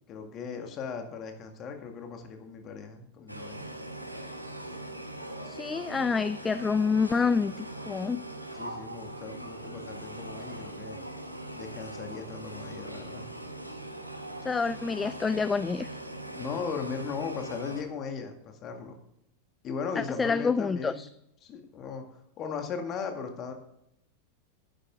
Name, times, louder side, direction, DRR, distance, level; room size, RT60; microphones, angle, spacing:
voice 1, 0.1-3.6 8.5-11.0 11.5-13.3 16.3-19.0 19.6-21.1 21.4-23.5, left 6 dB, 30° left, 2.1 m, -37 dB
sound 1, 3.3-17.8, right 1 dB, 90° right, 1.3 m, -41 dB
voice 2, 5.4-8.2 14.4-15.9 20.0-21.1, left 5 dB, 15° left, 0.3 m, -27 dB
11.5 x 10.0 x 3.7 m
figure-of-eight pair, 90°, 0 cm